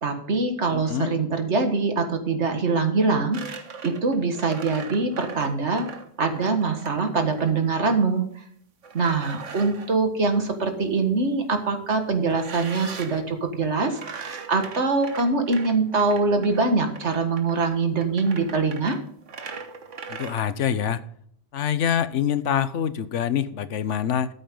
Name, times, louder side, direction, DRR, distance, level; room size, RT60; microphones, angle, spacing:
voice 1, 0.0-5.9 6.2-8.4 8.9-19.0, right 4 dB, 65° right, 6 dB, 1.9 m, -24 dB
voice 2, 0.7-1.1 20.1-21.0 21.5-24.3, left 9 dB, 80° left, 14 dB, 1.1 m, -25 dB
sound 1, 3.3-7.6 8.8-10.0 12.3-13.3 13.9-20.4, right 5 dB, 85° right, 1.6 m, -39 dB
13.5 x 8.0 x 3.8 m, 0.64 s
omnidirectional pair, 1.2 m